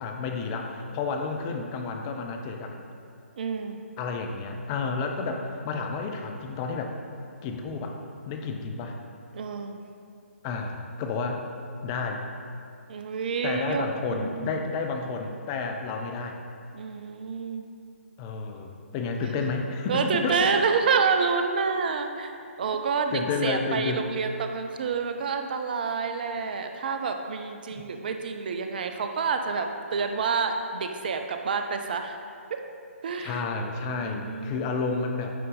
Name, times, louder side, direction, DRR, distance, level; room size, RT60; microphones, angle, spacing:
voice 1, 0.0-2.8 4.0-6.9 7.4-8.0 8.3-9.0 10.4-11.5 11.8-12.2 13.4-16.4 18.2-20.5 23.1-24.0 27.7-27.8 33.2-35.3, left 4 dB, 20° left, 3 dB, 0.5 m, -31 dB
voice 2, 3.4-3.8 9.3-9.8 12.9-14.6 16.7-17.7 19.2-19.3 19.9-32.2 33.0-33.5 34.0-34.8, right 5 dB, 40° right, 6 dB, 0.5 m, -28 dB
9.1 x 3.8 x 3.9 m, 2.4 s
figure-of-eight pair, 135°, 8 cm